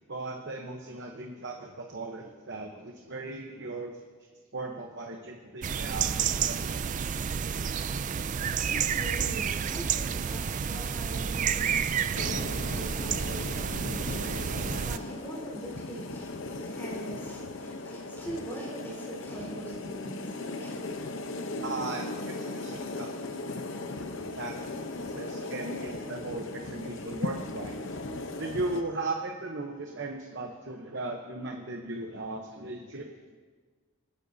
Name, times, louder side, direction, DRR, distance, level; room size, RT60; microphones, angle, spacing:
voice 1, 0.0-4.0 4.5-6.9 21.6-24.8 25.1-28.0 28.4-33.1, right 2 dB, 50° right, 2 dB, 0.9 m, -37 dB
sound 1, 5.6-15.0, right 7 dB, 35° right, 0.3 m, -30 dB
voice 2, 8.6-20.8, right 1 dB, 10° left, -5 dB, 3.7 m, -43 dB
sound 2, 12.1-28.8, left 2 dB, 60° left, 0.8 m, -37 dB
24.5 x 10.0 x 2.7 m, 1.5 s
head